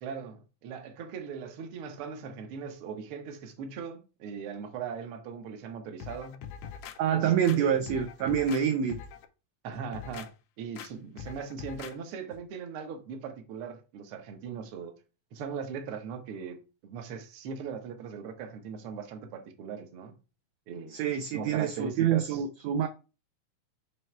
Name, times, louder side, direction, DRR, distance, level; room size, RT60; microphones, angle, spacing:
voice 1, 0.0-6.5 7.1-7.8 9.6-10.3 10.6-15.0 15.3-20.2 20.7-21.0 21.3-22.4, right 6 dB, 60° right, 1.5 m, -39 dB
sound 1, 6.0-7.0 7.4-8.6 8.9-9.3 9.7-10.3 10.8-10.9 11.2-11.9 12.3-12.4, left 8 dB, 85° left, 1.3 m, -43 dB
voice 2, 7.0-9.0 20.9-22.9, right 8 dB, 75° right, 1.6 m, -26 dB
7.6 x 3.1 x 4.5 m
omnidirectional pair, 3.6 m